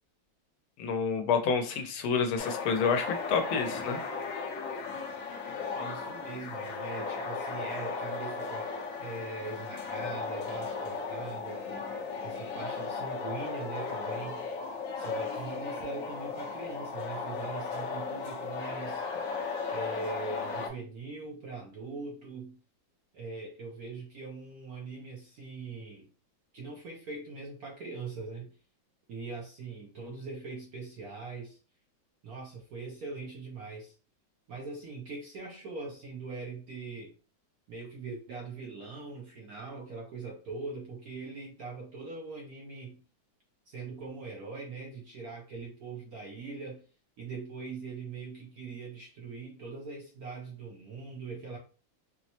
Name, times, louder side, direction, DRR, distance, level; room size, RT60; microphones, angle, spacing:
voice 1, 0.8-4.0, left 5 dB, 90° left, 6 dB, 1.5 m, -28 dB
sound 1, 2.4-20.7, left 4 dB, 60° left, 0.9 m, -36 dB
voice 2, 5.8-8.7 9.0-11.9 12.2-14.5 15.0-19.0 19.7-22.6 23.1-26.1 26.5-28.5 29.1-31.6 32.2-33.9 34.5-37.1 37.7-43.0 43.7-46.8 47.2-51.6, right 3 dB, 75° right, 0 dB, 0.8 m, -41 dB
4.4 x 2.0 x 2.8 m, 0.35 s
omnidirectional pair, 2.2 m